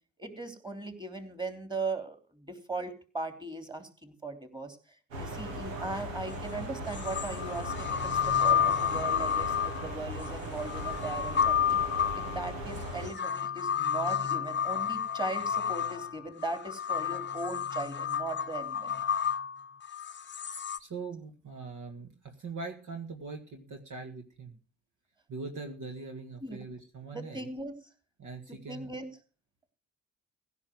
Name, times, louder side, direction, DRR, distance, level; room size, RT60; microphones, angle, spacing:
voice 1, 0.2-4.8 5.1-8.0 8.4-11.8 12.1-19.0 26.4-26.6 27.1-27.7 28.5-29.1, right 3 dB, 10° right, 7 dB, 3.3 m, -38 dB
Belle of Cincinnati docked and idling, 5.1-13.1, right 1 dB, 90° right, 1.5 m, -38 dB
sound 1, 6.3-6.4 6.9-20.8, left 8 dB, 30° left, 0.9 m, -31 dB
voice 2, 20.8-24.6 25.3-27.5 28.2-29.0, right 4 dB, 50° right, 4 dB, 1.9 m, -42 dB
16.0 x 5.8 x 7.9 m, 0.37 s
hypercardioid pair, 40°, 39 cm